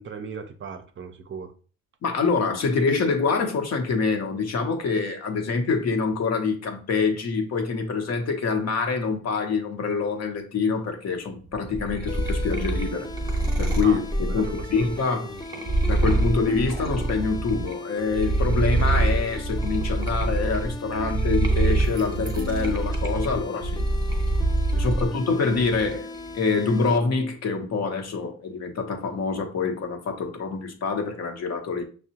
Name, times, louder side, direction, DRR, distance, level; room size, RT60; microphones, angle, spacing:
voice 1, 0.0-1.5 13.8-14.0 14.4-14.9 15.2-15.4 24.7-25.3, right 6 dB, 40° right, 0.6 m, -37 dB
voice 2, 2.0-13.1 13.6-15.3 15.9-23.9 24.8-31.8, left 4 dB, 60° left, 0.8 m, -25 dB
sound 1, 11.5-17.8 18.1-25.1 25.5-26.2, right 2 dB, 15° right, 0.9 m, -25 dB
sound 2, 12.1-27.0, left 3 dB, 15° left, 0.3 m, -38 dB
5.8 x 2.1 x 2.8 m
cardioid pair, 90°, 30 cm